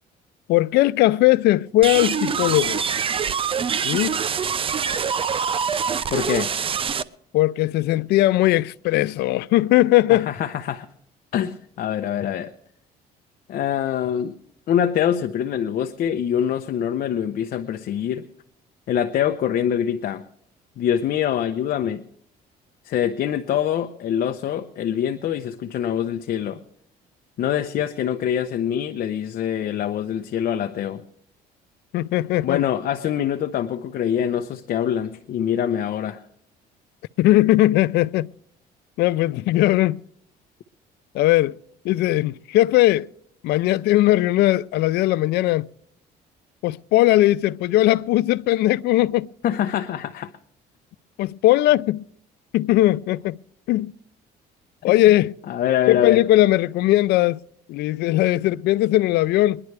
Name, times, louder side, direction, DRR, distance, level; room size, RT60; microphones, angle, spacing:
voice 1, 0.5-2.8 3.8-4.2 7.3-10.3 31.9-32.6 37.2-38.3 39.0-40.0 41.1-41.6 41.8-43.1 43.4-45.7 46.6-49.3 51.2-52.0 52.5-53.4 53.7-53.9 54.8-55.4 55.9-57.4 57.7-59.6, left 16 dB, 75° left, 0.4 m, -19 dB
sound 1, 1.8-7.0, right 7 dB, 30° right, 0.6 m, -24 dB
voice 2, 6.1-6.5 10.1-10.9 11.3-12.5 13.5-14.4 14.7-18.3 18.9-20.2 20.8-22.0 22.8-26.6 27.4-31.0 32.4-36.2 49.4-50.3 54.9-55.0 55.5-56.2, left 9 dB, 60° left, 0.8 m, -24 dB
22.0 x 11.0 x 3.3 m
cardioid pair, 110°, 17 cm